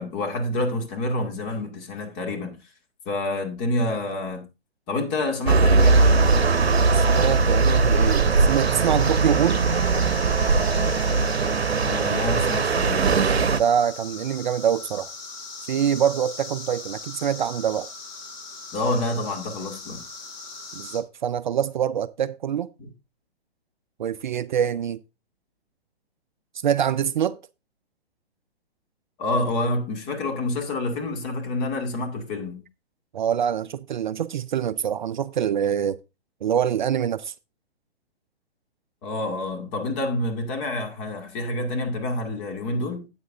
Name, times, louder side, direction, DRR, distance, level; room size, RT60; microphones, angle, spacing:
voice 1, 0.0-2.5 3.1-4.4 4.9-6.3 11.8-13.0 18.7-20.0 22.8-22.9 29.2-32.6 39.0-43.1, left 2 dB, 30° left, 2.3 m, -28 dB
sound 1, 5.5-13.6, right 4 dB, 80° right, 0.8 m, -20 dB
sound 2, 5.8-21.0, left 3 dB, 45° left, 3.9 m, -39 dB
voice 2, 6.9-9.6 13.6-15.1 15.7-17.9 20.7-22.7 24.0-25.0 26.6-27.4 33.1-36.0 36.4-37.3, right 9 dB, 50° right, 0.5 m, -25 dB
12.5 x 8.7 x 2.6 m
figure-of-eight pair, 125°, 31 cm